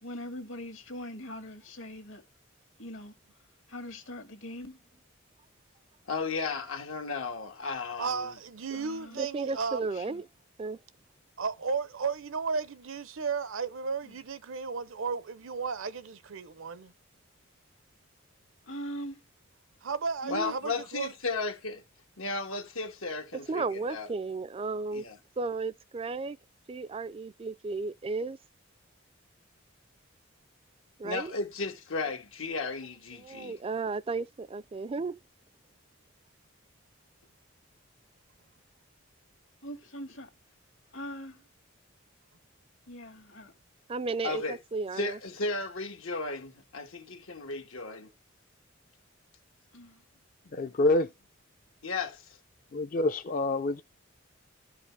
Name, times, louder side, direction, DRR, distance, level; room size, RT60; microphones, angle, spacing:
voice 1, 0.0-2.2 2.8-3.1 3.7-4.8 8.7-9.2 9.9-10.2 14.0-14.2 18.7-19.2 20.2-20.6 39.6-40.3 40.9-41.4 42.9-43.5 49.7-50.0, equal, 70° left, 1.8 m, -41 dB
voice 2, 6.1-8.3 20.3-21.8 22.2-24.1 24.9-25.2 31.0-33.6 44.2-44.6 44.9-48.1 51.8-52.4, left 3 dB, 90° left, 1.6 m, -34 dB
voice 3, 8.0-9.9 11.4-16.9 19.8-21.1, right 5 dB, 75° right, 0.7 m, -34 dB
voice 4, 9.2-10.2 10.6-10.8 23.5-25.1 25.4-26.4 26.7-28.4 31.0-31.3 33.1-35.2 43.9-45.2, right 4 dB, 30° right, 0.4 m, -34 dB
voice 5, 50.5-51.1 52.7-53.8, left 2 dB, 40° left, 0.5 m, -26 dB
12.5 x 4.9 x 3.4 m
head